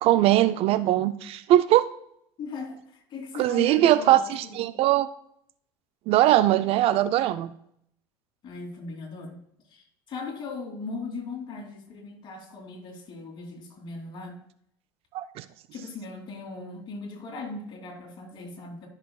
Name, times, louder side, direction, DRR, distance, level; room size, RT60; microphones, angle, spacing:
voice 1, 0.0-1.9 3.4-5.1 6.1-7.5 15.1-15.4, right 13 dB, 55° right, 14 dB, 0.5 m, -21 dB
voice 2, 2.4-4.7 8.4-9.4 9.7-14.4 15.7-18.9, left 3 dB, 40° left, 1 dB, 3.0 m, -38 dB
14.0 x 6.4 x 2.3 m, 0.70 s
hypercardioid pair, 90°, 12 cm